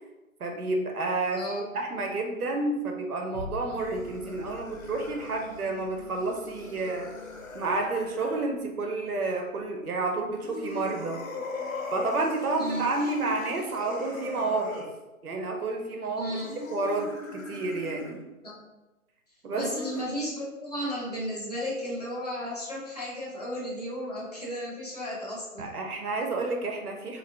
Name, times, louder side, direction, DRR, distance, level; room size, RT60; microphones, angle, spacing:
voice 1, 0.4-7.1 7.5-11.2 11.9-14.9 15.2-16.3 16.7-18.2 19.4-19.7 25.6-27.2, right 3 dB, 90° right, 2 dB, 0.7 m, -30 dB
voice 2, 1.3-1.6 4.2-4.6 12.6-13.1 16.1-16.5 18.4-18.6 19.6-25.7, equal, 30° left, -5 dB, 0.7 m, -34 dB
sound 1, 3.3-11.9 12.4-12.5, left 1 dB, 20° right, 0.7 m, -48 dB
sound 2, 3.6-8.5 10.3-14.9 16.3-18.2 19.5-20.0, left 3 dB, 65° left, 0.7 m, -40 dB
2.6 x 2.4 x 3.2 m, 1.1 s
figure-of-eight pair, 155°, 43 cm